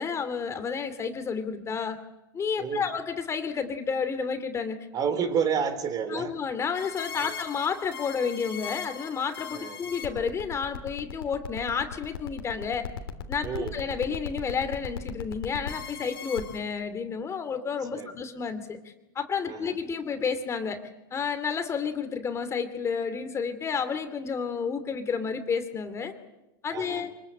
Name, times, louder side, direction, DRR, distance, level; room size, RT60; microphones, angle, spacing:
voice 1, 0.0-2.0 2.3-4.8 6.1-12.9 13.3-18.8 19.1-20.8 21.1-26.1 26.6-27.1, left 6 dB, 25° left, 9 dB, 2.6 m, -31 dB
voice 2, 4.9-6.3 9.5-9.8 13.4-13.7 17.9-18.1 19.5-19.7 26.7-27.0, right 7 dB, 30° right, 12 dB, 3.4 m, -29 dB
sound 1, 6.7-16.6, left 8 dB, 90° left, 3.2 m, -38 dB
25.0 x 22.5 x 8.6 m, 0.96 s
hypercardioid pair, 115°, 12 cm